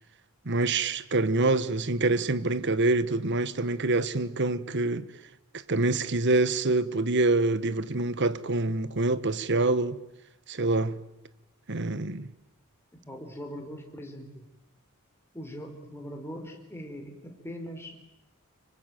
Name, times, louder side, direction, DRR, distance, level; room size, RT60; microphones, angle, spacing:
voice 1, 0.4-5.1 5.7-10.0 10.5-11.0 11.7-12.3, right 2 dB, 55° right, 1.3 m, -26 dB
voice 2, 12.9-14.4 15.3-18.0, equal, 10° left, 4.4 m, -41 dB
25.0 x 23.5 x 9.2 m
head